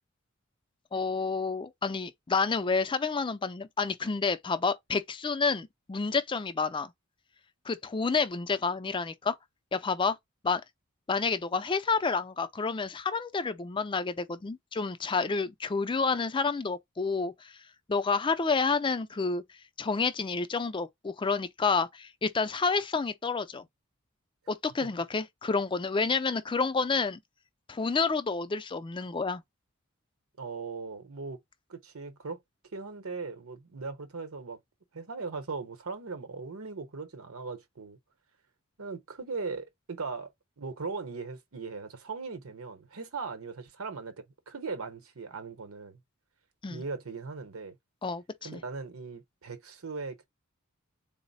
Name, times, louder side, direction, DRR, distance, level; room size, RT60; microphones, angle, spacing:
voice 1, 0.9-6.9 7.7-9.3 9.7-10.2 10.4-10.6 11.1-17.5 17.9-19.4 19.8-23.6 24.5-27.2 27.7-29.4 46.6-46.8 48.0-48.6, left 4 dB, 25° left, 0.4 m, -29 dB
voice 2, 30.4-31.4 31.7-32.4 32.7-34.6 34.9-38.0 38.8-40.3 40.6-46.0 46.7-47.8 48.4-50.3, right 4 dB, 85° right, 0.9 m, -39 dB
4.0 x 2.0 x 4.0 m
head